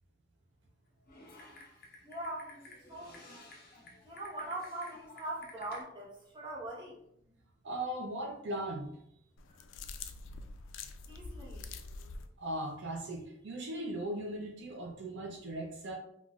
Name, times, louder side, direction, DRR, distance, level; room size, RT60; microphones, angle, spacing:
Typing, 1.1-5.8, left 2 dB, 50° left, 0.7 m, -53 dB
voice 1, 2.0-2.6 2.9-3.2 4.0-7.0 11.1-11.7, right 1 dB, 25° right, -4 dB, 0.9 m, -41 dB
voice 2, 7.6-8.9 12.4-16.0, right 1 dB, 70° right, 1 dB, 0.5 m, -38 dB
sound 1, 9.4-12.3, left 3 dB, 85° left, 0.3 m, -45 dB
3.5 x 2.4 x 2.3 m, 0.73 s
head